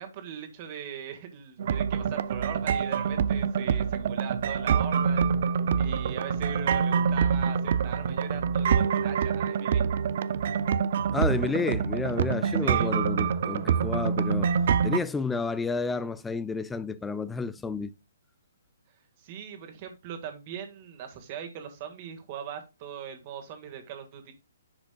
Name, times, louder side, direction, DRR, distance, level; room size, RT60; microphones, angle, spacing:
voice 1, 0.0-5.2 5.8-9.8 12.6-12.9 19.2-24.3, right 8 dB, 35° right, 1.7 m, -40 dB
sound 1, 1.6-15.0, right 7 dB, 50° right, 0.5 m, -26 dB
voice 2, 11.1-14.5 14.8-17.9, left 4 dB, 10° left, 0.3 m, -30 dB
10.0 x 5.0 x 2.3 m
hypercardioid pair, 140°, 0 cm